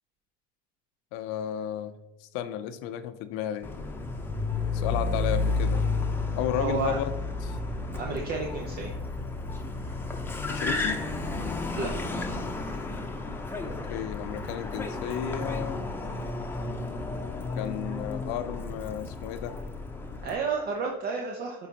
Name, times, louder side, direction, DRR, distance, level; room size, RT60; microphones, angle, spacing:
voice 1, 1.1-3.7 4.7-5.8 6.4-7.1 7.4-7.6 10.5-11.0 13.6-15.9 17.6-19.6, left 10 dB, 70° left, 11 dB, 0.6 m, -33 dB
Car, 3.6-20.4, left 3 dB, 10° left, 0.8 m, -32 dB
voice 2, 6.6-7.0 7.9-8.9 11.8-12.0 20.2-21.7, right 5 dB, 50° right, 1 dB, 0.9 m, -31 dB
9.0 x 4.0 x 2.9 m, 0.95 s
supercardioid pair, 90°, 21 cm